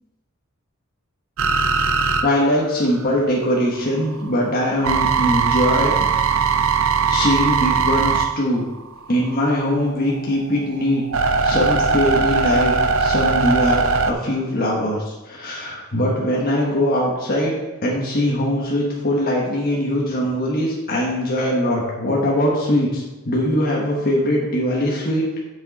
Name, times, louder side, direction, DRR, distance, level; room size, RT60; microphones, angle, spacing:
sound 1, 1.4-3.3 3.7-9.3 9.9-14.1, right 5 dB, 65° right, 0.5 m, -20 dB
voice 1, 2.2-5.9 7.0-8.6 9.1-11.0 11.4-17.5 17.8-25.2, left 1 dB, 45° left, -4 dB, 1.3 m, -21 dB
7.5 x 6.4 x 4.1 m, 1.1 s
head